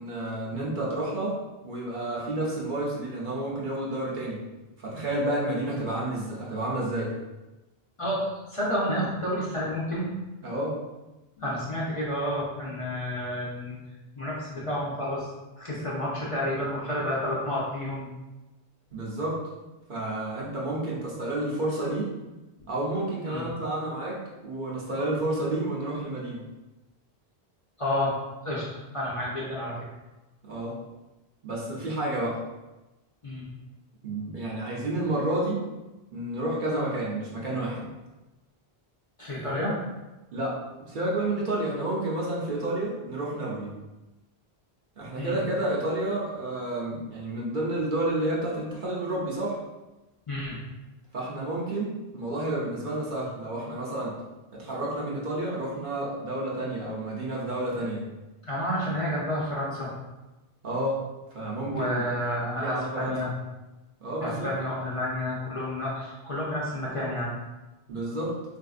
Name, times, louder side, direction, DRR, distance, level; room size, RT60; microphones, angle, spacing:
voice 1, 0.0-1.4 1.6-4.4 4.8-7.1 10.4-10.8 18.9-19.4 19.9-22.1 22.7-26.4 30.4-30.8 31.4-32.4 34.0-35.6 36.1-37.8 40.3-40.6 40.9-43.7 45.0-49.6 51.1-54.1 54.5-58.0 60.6-61.0 61.3-62.0 62.5-63.2 64.0-64.5 67.9-68.4, right 1 dB, 55° right, -5 dB, 0.8 m, -30 dB
voice 2, 8.0-10.1 11.4-13.8 14.2-15.3 15.6-18.1 23.3-23.4 27.8-28.2 28.4-28.6 28.9-29.8 33.2-33.5 39.2-39.8 45.2-45.4 50.3-50.6 58.4-59.9 61.7-63.3 64.2-67.3, left 1 dB, 35° left, -7 dB, 0.6 m, -30 dB
3.7 x 2.6 x 2.4 m, 1.1 s
omnidirectional pair, 1.1 m